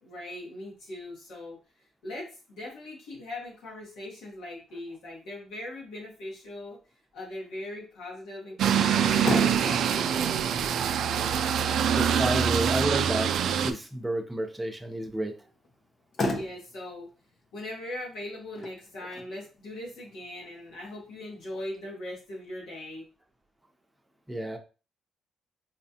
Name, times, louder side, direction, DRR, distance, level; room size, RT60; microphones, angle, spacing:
voice 1, 0.0-1.6 2.0-6.8 7.1-10.7 16.3-17.1 17.5-23.1, left 1 dB, 90° left, -3 dB, 1.3 m, -40 dB
sound 1, 8.6-13.7, right 8 dB, 70° right, 0.3 m, -25 dB
Motor vehicle (road), 8.9-21.8, left 2 dB, 45° left, 0.6 m, -39 dB
voice 2, 11.9-13.3 13.6-15.3 24.3-24.6, right 1 dB, 10° right, 4 dB, 0.7 m, -30 dB
4.3 x 2.3 x 2.8 m, 0.33 s
cardioid pair, 90°, 0 cm